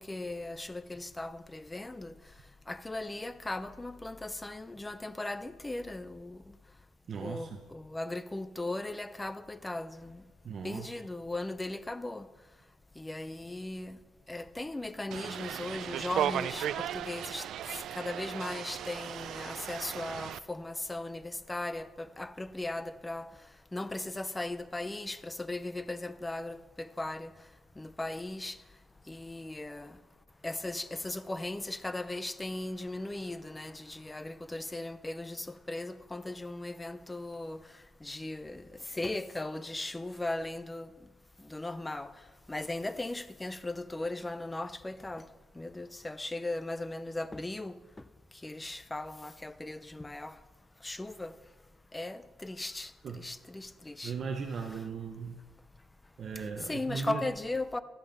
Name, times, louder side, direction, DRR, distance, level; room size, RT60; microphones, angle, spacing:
voice 1, 0.0-2.1 2.7-6.4 7.2-10.2 10.6-12.3 13.0-14.0 14.3-17.5 17.9-23.3 23.7-27.3 27.8-28.6 29.1-30.0 30.4-37.6 38.0-40.9 41.5-42.1 42.5-45.3 45.6-47.8 48.4-50.4 50.8-51.3 51.9-52.9 53.2-54.1 56.7-57.8, left 2 dB, 10° left, 0.4 m, -37 dB
voice 2, 7.1-7.6 10.4-11.0 53.0-53.3 54.0-55.4 56.2-57.3, right 5 dB, 40° right, 0.8 m, -38 dB
sound 1, 15.1-20.4, right 10 dB, 60° right, 0.4 m, -36 dB
12.0 x 11.0 x 5.3 m
cardioid pair, 165°, 0 cm